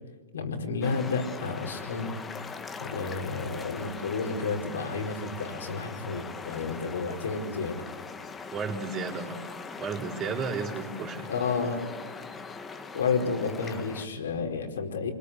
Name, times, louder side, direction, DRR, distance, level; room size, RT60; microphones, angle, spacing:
voice 1, 0.3-2.2 2.8-7.8 11.3-11.9 12.9-15.1, left 4 dB, 90° left, 3 dB, 4.7 m, -31 dB
sound 1, 0.8-14.1, left 4 dB, 15° left, 1.6 m, -41 dB
voice 2, 8.5-9.5 9.8-11.3, right 4 dB, 30° right, 2 dB, 4.6 m, -33 dB
26.0 x 22.0 x 8.4 m, 1.5 s
hypercardioid pair, 140°, 0 cm